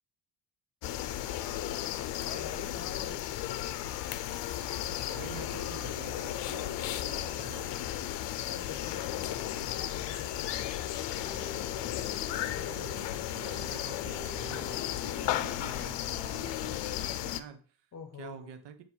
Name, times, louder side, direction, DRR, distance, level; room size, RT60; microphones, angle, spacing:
sound 1, 0.8-17.4, left 13 dB, 85° left, 0.5 m, -35 dB
voice 1, 2.2-3.3 8.4-10.8 17.9-18.5, left 6 dB, 40° left, 7 dB, 0.9 m, -46 dB
sound 2, 4.4-14.8, equal, 65° right, 1.9 m, -52 dB
voice 2, 5.1-7.8 12.4-17.8 18.2-18.8, right 7 dB, 90° right, 10 dB, 0.8 m, -48 dB
sound 3, 11.2-17.2, left 1 dB, 5° right, 1.0 m, -50 dB
7.0 x 3.0 x 4.4 m, 0.40 s
cardioid pair, 175°, 41 cm